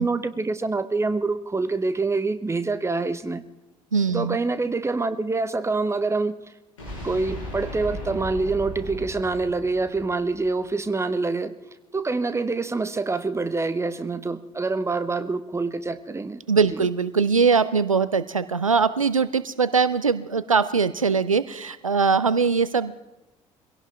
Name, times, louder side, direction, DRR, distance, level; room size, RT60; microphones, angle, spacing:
voice 1, 0.0-3.4 4.1-6.4 7.0-11.5 11.9-16.4 16.7-16.8, right 3 dB, 15° right, 12 dB, 1.2 m, -26 dB
voice 2, 3.9-4.4 16.5-22.9, right 5 dB, 90° right, 16 dB, 0.5 m, -21 dB
sound 1, 6.8-10.7, left 1 dB, 80° left, 6.8 m, -36 dB
23.0 x 17.0 x 3.5 m, 1.0 s
figure-of-eight pair, 55°, 17 cm